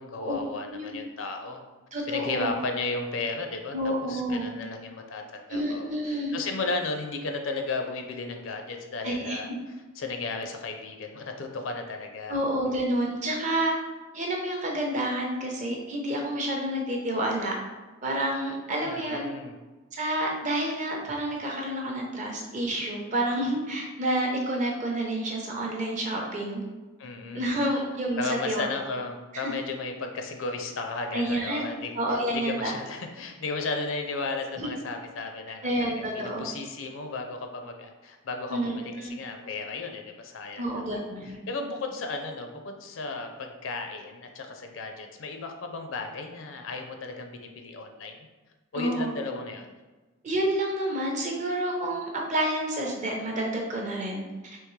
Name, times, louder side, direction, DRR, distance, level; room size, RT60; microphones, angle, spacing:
voice 1, 0.0-1.6 2.1-3.7 4.1-9.5 10.0-12.4 12.7-12.8 18.8-19.5 27.0-27.7 28.2-41.0 41.5-48.1 48.7-49.7, left 3 dB, 65° left, 5 dB, 0.4 m, -34 dB
voice 2, 0.7-1.0 1.9-2.6 3.7-4.5 5.5-6.3 9.0-9.6 12.3-13.7 14.1-17.5 18.0-19.3 19.9-26.6 27.3-28.6 29.4-29.5 31.1-32.7 34.6-34.7 35.6-36.5 38.5-39.2 40.6-41.4 48.7-49.1 50.2-54.6, right 1 dB, 35° right, 0 dB, 0.6 m, -29 dB
3.6 x 2.9 x 3.1 m, 1.2 s
head